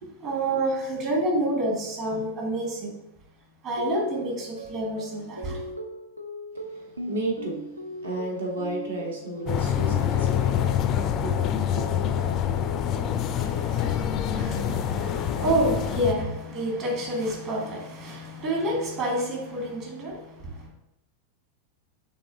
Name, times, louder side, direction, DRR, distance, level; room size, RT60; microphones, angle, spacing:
voice 1, 0.2-2.9 3.6-5.6 13.2-20.7, right 1 dB, 40° right, -1 dB, 1.6 m, -29 dB
sound 1, 3.8-14.2 14.6-15.8 16.2-16.7, equal, 85° right, 0.4 m, -38 dB
voice 2, 6.5-7.6 8.0-10.9 11.2-11.8, right 1 dB, 65° right, -1 dB, 1.2 m, -33 dB
sound 2, 9.5-16.1, left 9 dB, 35° left, 0.3 m, -26 dB
5.9 x 3.4 x 2.6 m, 0.84 s
figure-of-eight pair, 90°, 0 cm